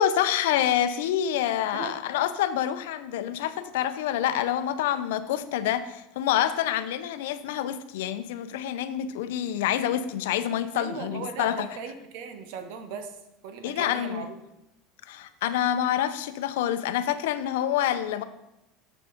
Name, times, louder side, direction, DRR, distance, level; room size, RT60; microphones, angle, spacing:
voice 1, 0.0-11.7 13.6-14.3 15.1-18.2, left 11 dB, 85° left, 11 dB, 0.6 m, -27 dB
voice 2, 10.7-13.2 13.4-14.4, right 6 dB, 70° right, 8 dB, 1.2 m, -38 dB
7.3 x 6.9 x 5.1 m, 0.93 s
supercardioid pair, 130°, 0 cm